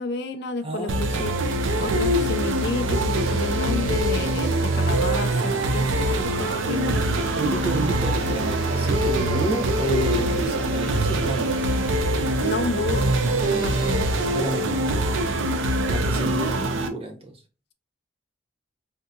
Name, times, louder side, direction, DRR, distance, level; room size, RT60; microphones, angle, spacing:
voice 1, 0.0-1.3 1.8-7.2 12.4-13.1 13.4-14.1 16.5-16.7, left 4 dB, 60° left, 0.5 m, -31 dB
voice 2, 0.6-1.4 7.3-11.7 14.3-15.2 15.9-17.4, right 1 dB, 30° right, 0.8 m, -30 dB
sound 1, 0.9-16.9, right 1 dB, 90° right, 0.5 m, -23 dB
sound 2, 7.0-15.5, equal, 75° right, 1.5 m, -39 dB
3.6 x 2.7 x 2.3 m
head